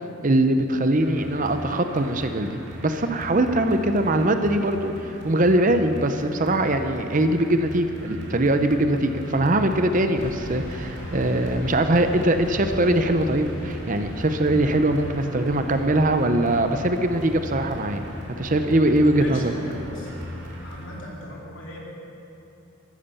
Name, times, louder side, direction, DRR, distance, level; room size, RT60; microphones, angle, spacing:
voice 1, 0.2-18.0 18.3-19.4, right 1 dB, 40° right, 8 dB, 0.7 m, -22 dB
sound 1, 1.0-20.9, equal, 55° right, 2.7 m, -39 dB
sound 2, 10.1-19.9, equal, 80° left, 3.6 m, -39 dB
voice 2, 19.1-20.3 20.6-21.8, left 1 dB, 60° left, -3 dB, 3.2 m, -39 dB
14.5 x 12.5 x 7.0 m, 2.8 s
head